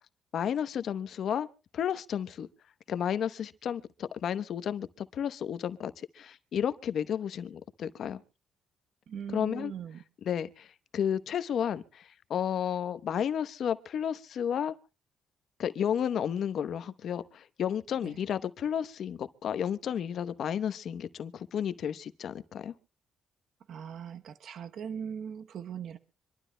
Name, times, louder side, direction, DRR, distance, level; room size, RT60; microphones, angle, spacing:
voice 1, 0.3-1.5 1.7-2.5 2.9-8.2 9.3-9.7 10.3-14.7 15.6-22.7, left 8 dB, 65° left, 0.9 m, -32 dB
voice 2, 9.1-10.0 18.0-18.2 23.7-26.0, right 7 dB, 65° right, 0.9 m, -40 dB
26.0 x 12.0 x 2.2 m
cardioid pair, 90°, 0 cm